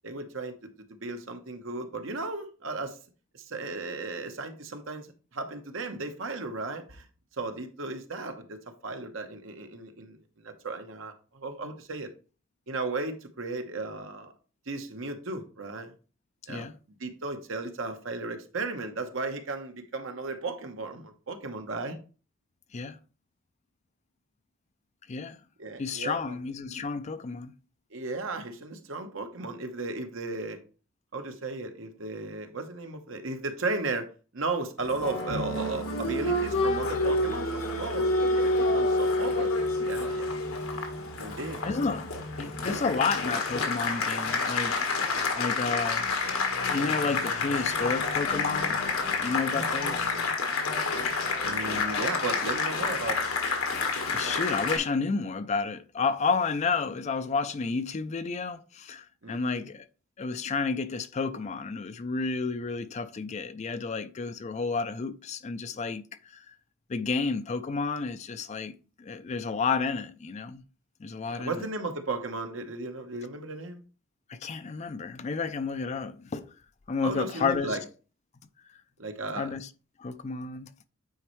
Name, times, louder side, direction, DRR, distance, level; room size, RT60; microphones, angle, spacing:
voice 1, 0.0-3.0 3.3-7.0 7.4-10.2 10.4-12.1 12.7-14.3 14.7-15.9 16.5-22.0 25.6-26.4 27.9-30.6 31.1-34.1 34.3-40.3 40.9-41.6 51.4-53.3 59.2-59.7 71.2-73.8 77.0-77.8 79.0-79.5, right 3 dB, 65° right, 1.0 m, -35 dB
voice 2, 25.8-27.5 41.6-42.1 42.4-44.9 45.3-46.4 46.7-48.8 49.2-50.2 53.9-59.9 60.2-66.0 66.3-66.5 66.9-70.6 71.0-71.7 74.3-76.5 76.9-77.8 79.3-79.7 80.0-80.7, left 4 dB, 35° left, 0.4 m, -31 dB
Applause, 34.8-54.8, left 3 dB, 85° left, 1.4 m, -28 dB
9.1 x 4.3 x 3.1 m
head